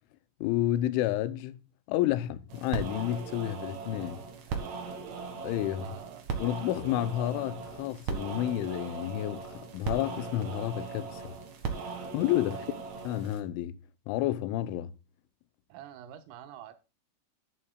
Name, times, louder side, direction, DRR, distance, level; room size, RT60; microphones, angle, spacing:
voice 1, 0.4-1.6 1.9-4.2 5.4-5.9 6.4-11.3 12.1-12.7 13.0-13.8 14.1-14.9, left 13 dB, 80° left, 3.1 m, -30 dB
sound 1, 2.5-13.4, right 5 dB, 60° right, 1.8 m, -38 dB
voice 2, 4.5-4.8 5.8-6.3 12.5-12.9 15.7-16.7, right 10 dB, 90° right, 3.8 m, -48 dB
11.5 x 11.0 x 2.3 m
omnidirectional pair, 5.6 m